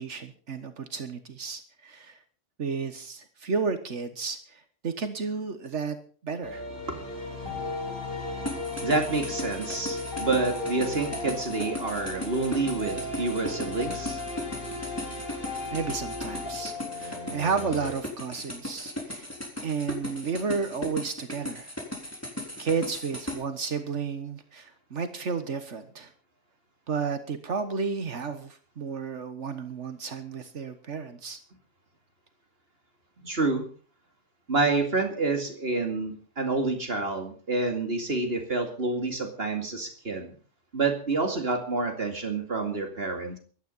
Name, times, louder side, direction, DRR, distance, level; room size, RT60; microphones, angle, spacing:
voice 1, 0.0-2.2 2.6-6.0 6.2-6.6 15.7-19.3 19.6-21.7 22.0-22.1 22.6-26.1 26.9-31.4, right 5 dB, 75° right, 9 dB, 1.6 m, -32 dB
sound 1, 6.4-17.9, left 2 dB, 45° left, 5.0 m, -36 dB
voice 2, 6.9-15.7 33.2-33.6 34.5-40.3 40.7-43.4, right 3 dB, 55° right, 4 dB, 2.6 m, -29 dB
sound 2, 8.5-23.4, left 1 dB, 10° left, 3.7 m, -37 dB
16.0 x 12.5 x 5.4 m, 0.41 s
omnidirectional pair, 1.2 m